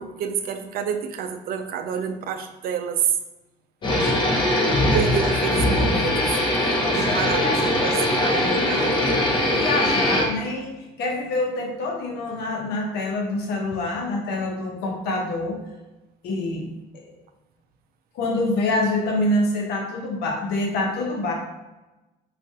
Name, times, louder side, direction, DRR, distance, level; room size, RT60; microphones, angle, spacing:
voice 1, 0.0-3.1 4.7-6.1 6.9-7.4 7.7-9.0, right 7 dB, 60° right, 8 dB, 0.4 m, -28 dB
voice 2, 3.8-4.4 6.8-9.2 9.5-15.6 16.2-16.7 16.9-17.1 18.1-21.3, left 2 dB, 75° left, 1 dB, 0.9 m, -27 dB
sound 1, 3.8-10.3, left 1 dB, 25° left, 0.8 m, -21 dB
4.5 x 2.5 x 2.7 m, 1.0 s
cardioid pair, 110°, 17 cm